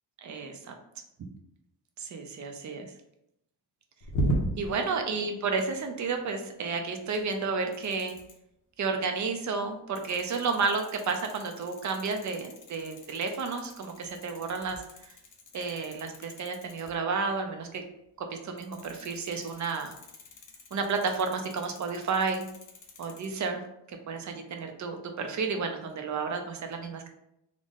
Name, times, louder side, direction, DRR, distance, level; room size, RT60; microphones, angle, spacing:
voice 1, 0.2-0.7 2.0-2.9 4.6-8.1 8.8-14.8 15.5-17.8 18.2-19.9 20.7-22.5 23.0-23.6 23.9-27.1, right 4 dB, 40° right, 5 dB, 0.4 m, -31 dB
sound 1, 4.0-4.8 5.5-5.8 6.4-6.5 7.0-7.4 7.7-8.3 9.9-17.0 18.6-23.3, right 1 dB, 45° left, 0.6 m, -38 dB
3.7 x 2.1 x 3.5 m, 0.80 s
wide cardioid pair, 170°, 45 cm